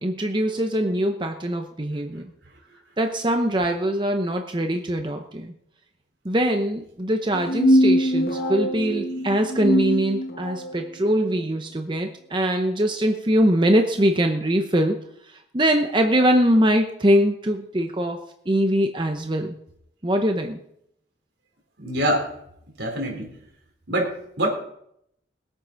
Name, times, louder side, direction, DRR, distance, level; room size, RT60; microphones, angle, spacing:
voice 1, 0.0-2.3 3.0-5.5 6.2-19.6 20.0-20.6, right 1 dB, 25° right, 5 dB, 0.8 m, -22 dB
sound 1, 7.3-10.8, equal, 55° left, 2.2 m, -22 dB
voice 2, 21.8-22.3 22.8-23.3 23.9-24.5, right 1 dB, 75° right, 2 dB, 3.9 m, -25 dB
21.0 x 8.5 x 5.2 m, 0.74 s
head